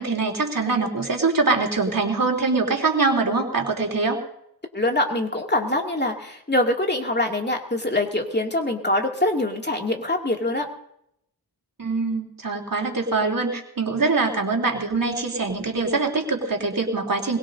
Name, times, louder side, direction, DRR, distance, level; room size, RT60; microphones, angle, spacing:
voice 1, 0.0-4.2 11.8-17.4, right 3 dB, 60° right, 0 dB, 3.3 m, -23 dB
voice 2, 4.7-10.6, left 1 dB, 25° left, 1 dB, 2.5 m, -24 dB
22.5 x 20.5 x 2.7 m, 0.73 s
wide cardioid pair, 65°, 38 cm